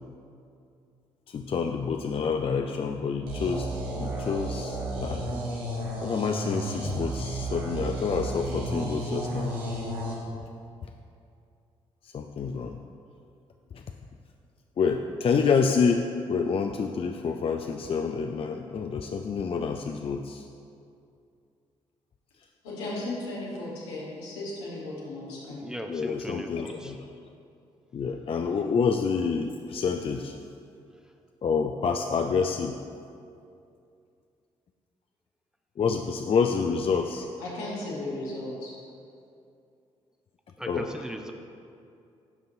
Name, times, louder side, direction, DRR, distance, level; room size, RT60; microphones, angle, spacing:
voice 1, 1.3-3.7 3.9-5.2 6.0-9.6 12.1-12.8 14.8-16.0 16.3-20.4 25.9-27.0 27.9-30.3 31.4-32.8 35.8-37.3 40.7-40.9, left 5 dB, 40° left, 4 dB, 0.4 m, -28 dB
sound 1, 3.3-10.1, right 1 dB, 80° right, 1.1 m, -32 dB
voice 2, 22.6-25.7 37.4-38.7, left 2 dB, 85° left, -6 dB, 1.3 m, -35 dB
voice 3, 25.6-26.9 40.6-41.3, equal, 5° right, 4 dB, 0.6 m, -37 dB
9.2 x 5.4 x 2.6 m, 2.5 s
hypercardioid pair, 40°, 14 cm